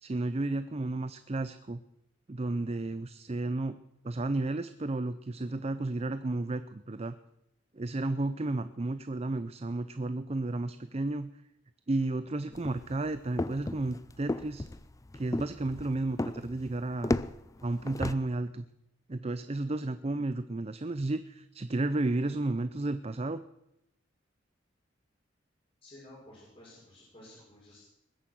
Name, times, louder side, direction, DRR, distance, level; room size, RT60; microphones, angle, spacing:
voice 1, 0.0-1.8 2.3-3.8 4.0-7.2 7.7-11.3 11.9-14.7 15.1-17.2 17.6-18.6 19.1-23.4, right 2 dB, 35° right, 12 dB, 0.6 m, -32 dB
sound 1, 12.5-18.1, left 2 dB, 20° left, 0.5 m, -35 dB
voice 2, 25.8-27.8, left 1 dB, 35° left, -9 dB, 6.2 m, -53 dB
21.0 x 10.0 x 6.2 m, 0.83 s
head